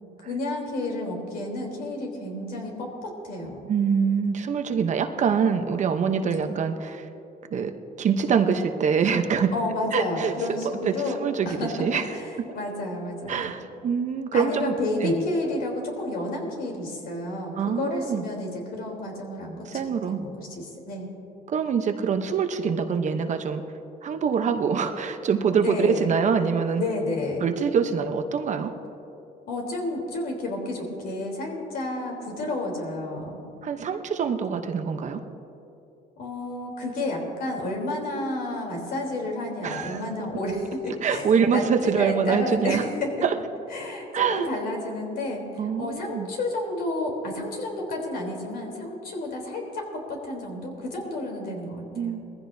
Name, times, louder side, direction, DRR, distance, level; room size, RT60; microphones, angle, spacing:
voice 1, 0.2-3.7 6.3-6.4 9.5-11.2 11.5-11.7 12.1-13.5 14.3-19.7 20.0-21.1 25.6-26.1 26.8-27.5 29.5-33.4 36.2-41.2 41.5-43.1 43.7-45.4 45.8-52.2, left 2 dB, 60° left, 0 dB, 3.5 m, -31 dB
voice 2, 3.7-7.1 7.5-7.7 8.0-9.5 9.9-10.6 10.8-12.1 13.3-14.8 15.0-15.2 17.6-18.2 19.7-20.2 21.5-23.6 24.0-26.8 27.4-28.7 33.6-35.2 39.6-40.1 41.0-42.8 43.2-43.3 44.1-44.5 45.6-46.3 51.9-52.2, right 6 dB, 45° right, 7 dB, 0.9 m, -24 dB
21.0 x 15.0 x 2.7 m, 2.9 s
cardioid pair, 110°, 17 cm